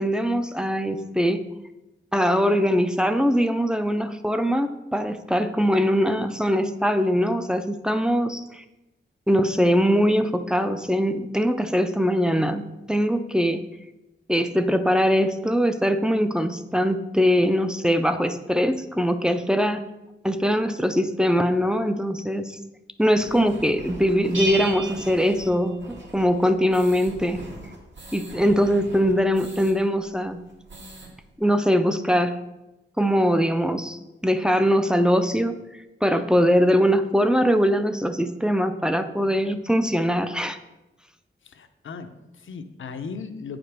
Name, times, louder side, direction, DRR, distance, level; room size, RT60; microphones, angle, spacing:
voice 1, 0.0-1.4 2.1-8.6 9.3-13.6 14.3-19.8 20.2-22.6 23.0-27.4 28.1-30.4 31.4-32.4 33.0-35.6 36.0-40.6, equal, 5° right, 9 dB, 0.4 m, -22 dB
sound 1, 23.2-29.7 30.1-30.2 30.5-31.1, right 2 dB, 65° right, 2.1 m, -42 dB
Bell, 24.3-26.2, right 2 dB, 85° right, 2.4 m, -32 dB
voice 2, 41.4-43.6, left 5 dB, 80° left, 8 dB, 0.7 m, -37 dB
8.6 x 5.1 x 5.9 m, 0.99 s
wide cardioid pair, 145°, 20 cm